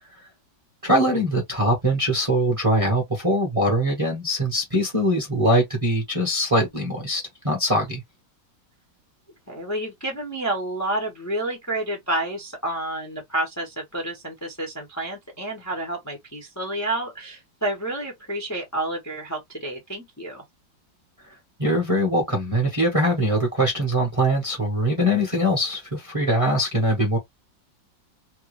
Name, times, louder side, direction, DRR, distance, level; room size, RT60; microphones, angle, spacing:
voice 1, 0.8-8.0 21.6-27.2, equal, 25° right, 0.8 m, -22 dB
voice 2, 9.5-20.4, right 1 dB, 15° left, 0.6 m, -29 dB
3.5 x 2.3 x 3.0 m
omnidirectional pair, 2.0 m